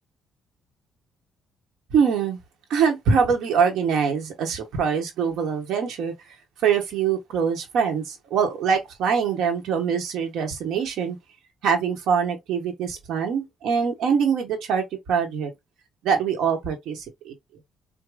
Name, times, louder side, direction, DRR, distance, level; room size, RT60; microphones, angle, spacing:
voice 1, 1.9-2.4 2.7-6.1 6.6-11.2 11.6-15.5 16.0-17.3, right 6 dB, 75° right, 1.1 m, -23 dB
4.7 x 2.2 x 2.3 m
cardioid pair, 145°, 0 cm